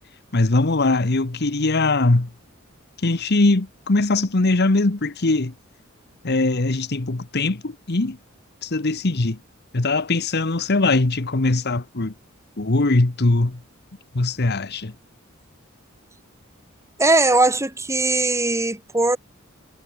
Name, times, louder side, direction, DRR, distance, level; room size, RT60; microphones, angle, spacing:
voice 1, 0.3-2.3 3.0-5.5 6.2-8.2 8.6-9.4 9.7-12.1 12.6-13.6 14.1-14.9, left 2 dB, 50° left, 1.2 m, -21 dB
voice 2, 17.0-19.2, right 2 dB, 15° right, 2.1 m, -19 dB
head